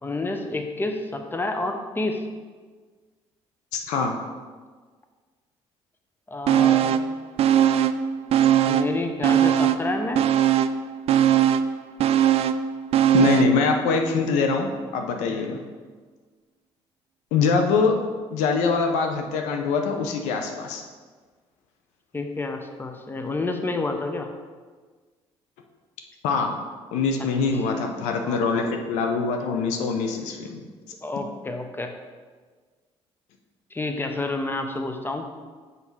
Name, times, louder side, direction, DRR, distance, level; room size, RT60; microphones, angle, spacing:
voice 1, 0.0-2.2 6.3-7.1 8.7-10.2 15.3-15.6 22.1-24.3 27.5-27.6 28.2-28.7 31.0-31.9 33.7-35.3, left 2 dB, 20° left, 5 dB, 0.8 m, -29 dB
voice 2, 3.7-4.1 13.1-15.6 17.3-17.9 18.3-20.8 26.2-26.6 26.9-30.6, left 4 dB, 90° left, 4 dB, 0.7 m, -23 dB
sound 1, 6.5-7.1 7.4-9.0 9.2-13.6 14.0-14.1, right 10 dB, 60° right, 0.4 m, -20 dB
5.7 x 5.4 x 4.6 m, 1.5 s
supercardioid pair, 75°, 12 cm